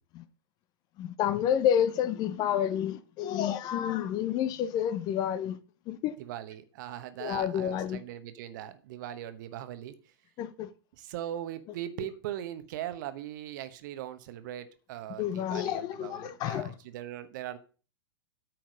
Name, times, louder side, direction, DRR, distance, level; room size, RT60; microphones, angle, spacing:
voice 1, 1.0-5.6 5.9-6.1 7.2-8.0 10.4-10.7 15.2-16.7, left 10 dB, 30° left, 0.7 m, -29 dB
voice 2, 6.2-10.0 11.0-17.6, right 12 dB, 50° right, 1.0 m, -40 dB
9.0 x 4.6 x 6.3 m
figure-of-eight pair, 105°, 13 cm